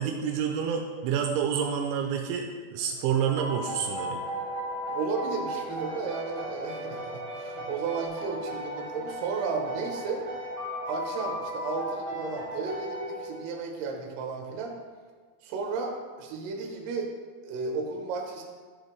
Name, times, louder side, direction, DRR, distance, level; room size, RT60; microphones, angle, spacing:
voice 1, 0.0-4.2, right 7 dB, 85° right, 2 dB, 3.0 m, -28 dB
sound 1, 2.7-8.1, equal, 50° left, 2.6 m, -48 dB
sound 2, 3.4-13.7, equal, 25° right, 2.5 m, -36 dB
voice 2, 4.9-10.2 10.9-14.8 15.4-17.1 17.4-18.4, right 4 dB, 70° right, 1 dB, 2.9 m, -33 dB
12.5 x 6.5 x 3.5 m, 1.5 s
omnidirectional pair, 5.5 m